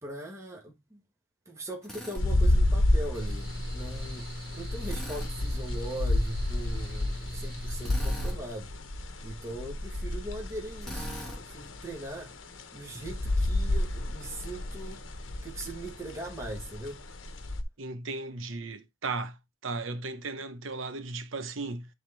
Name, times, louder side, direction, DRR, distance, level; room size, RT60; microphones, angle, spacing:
voice 1, 0.0-1.0 1.5-8.7 9.2-11.1 11.4-12.3 12.7-15.0 15.4-17.0, right 1 dB, 15° right, 1.4 m, -40 dB
Drill, 1.8-2.2 4.8-5.3 7.8-8.4 10.8-11.4, equal, ahead, 1.6 m, -41 dB
sound 1, 2.2-17.6, left 1 dB, 80° left, 1.0 m, -30 dB
Mechanical fan, 3.1-8.3, equal, 50° right, 2.1 m, -42 dB
voice 2, 17.8-19.4 19.6-21.9, right 3 dB, 85° right, 0.9 m, -36 dB
10.5 x 3.7 x 3.2 m
head